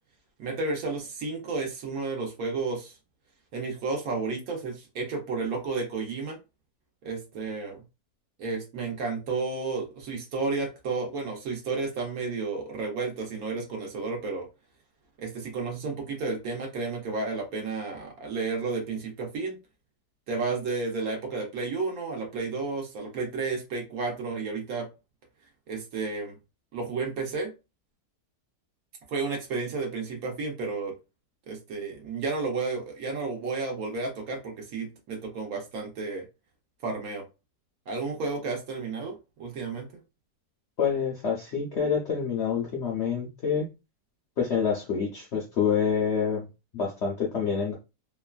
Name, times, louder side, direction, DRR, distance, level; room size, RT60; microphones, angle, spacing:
voice 1, 0.4-2.9 3.5-6.4 7.0-7.8 8.4-14.5 15.2-19.6 20.3-24.9 25.7-26.4 26.7-27.5 29.1-30.9 31.5-36.2 36.8-37.2 37.9-39.9, right 4 dB, 65° right, 1.1 m, -32 dB
voice 2, 40.8-43.7 44.4-46.5 46.7-47.7, left 6 dB, 65° left, 0.6 m, -27 dB
2.9 x 2.2 x 2.3 m
omnidirectional pair, 1.7 m